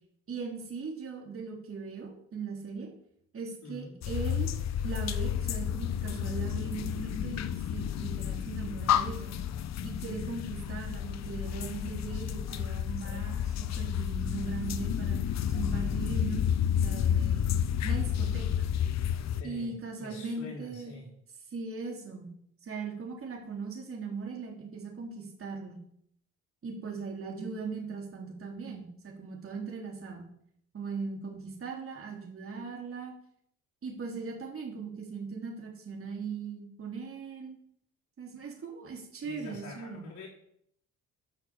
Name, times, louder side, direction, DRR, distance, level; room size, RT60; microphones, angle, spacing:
voice 1, 0.3-2.9 3.3-4.5 4.8-9.3 9.8-15.2 15.5-16.4 16.8-17.5 17.8-18.7 19.4-21.1 21.5-22.3 22.6-25.8 26.6-30.3 30.7-33.1 33.8-37.6 38.2-40.1, right 4 dB, 45° right, 0 dB, 3.5 m, -39 dB
voice 2, 3.6-4.0 19.3-21.1 39.2-40.3, left 3 dB, 75° left, -3 dB, 4.5 m, -45 dB
sound 1, 4.0-19.4, left 9 dB, 60° left, 0.7 m, -31 dB
9.5 x 6.2 x 7.0 m, 0.68 s
cardioid pair, 90°, 30 cm